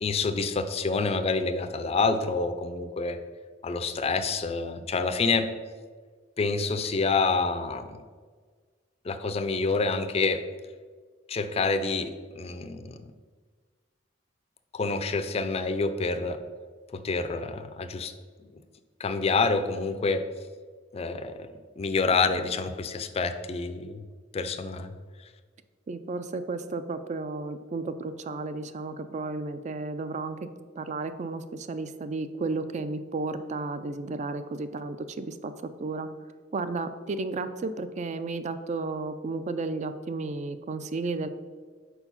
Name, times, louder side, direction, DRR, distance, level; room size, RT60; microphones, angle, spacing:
voice 1, 0.0-3.2 3.6-5.5 6.4-8.0 9.0-10.4 11.3-13.1 14.7-16.4 16.9-18.1 19.0-20.3 20.9-21.5 21.8-24.1 24.3-25.0, left 4 dB, 35° left, 10 dB, 0.4 m, -27 dB
voice 2, 25.9-30.4 30.8-35.5 35.8-36.1 36.5-41.3, right 3 dB, 40° right, 11 dB, 0.4 m, -33 dB
4.6 x 4.3 x 5.6 m, 1.5 s
head